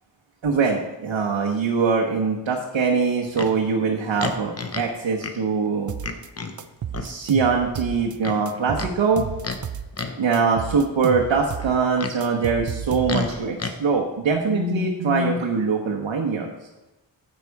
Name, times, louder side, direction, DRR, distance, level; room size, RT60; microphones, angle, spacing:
voice 1, 0.4-5.9 7.0-9.3 10.2-16.5, right 5 dB, 90° right, 0 dB, 1.1 m, -23 dB
Livestock farm animals working animals, 3.3-3.6 4.2-4.9 5.2-5.4 6.0-6.6 6.9-7.1 8.2-8.9 9.4-9.6 9.9-10.3 11.6-12.2 13.1-13.7, left 4 dB, 35° left, 0.7 m, -30 dB
sound 1, 5.9-6.3 6.6-8.2 8.5-10.0 10.3-13.4, right 8 dB, 45° right, 0.5 m, -32 dB
9.7 x 7.6 x 4.7 m, 1.1 s
wide cardioid pair, 145°, 44 cm